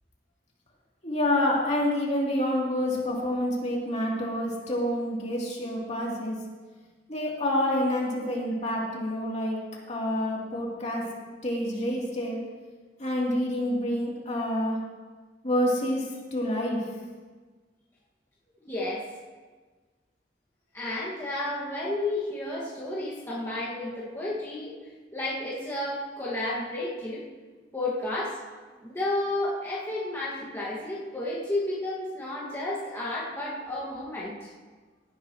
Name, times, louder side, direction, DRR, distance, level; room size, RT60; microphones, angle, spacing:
voice 1, 1.0-6.4 7.1-9.6 9.9-11.1 11.4-12.4 13.0-14.8 15.4-16.9, left 1 dB, 40° left, -4 dB, 3.1 m, -28 dB
voice 2, 18.6-19.1 20.7-24.8 25.1-27.2 27.7-28.4 28.8-34.5, left 1 dB, 15° left, -9 dB, 1.9 m, -32 dB
18.0 x 10.5 x 3.1 m, 1.4 s
head